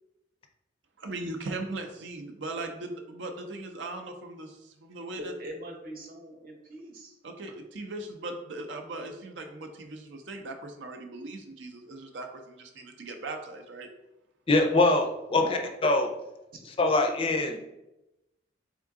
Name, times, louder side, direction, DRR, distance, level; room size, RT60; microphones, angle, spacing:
voice 1, 1.0-5.3 7.2-13.9, right 2 dB, 80° right, 4 dB, 0.6 m, -39 dB
voice 2, 5.2-7.1 15.3-15.7 16.8-16.9, equal, 50° right, 2 dB, 0.9 m, -41 dB
voice 3, 14.5-16.1 16.7-17.6, left 2 dB, 30° left, 4 dB, 0.4 m, -24 dB
3.6 x 3.6 x 3.5 m, 0.93 s
head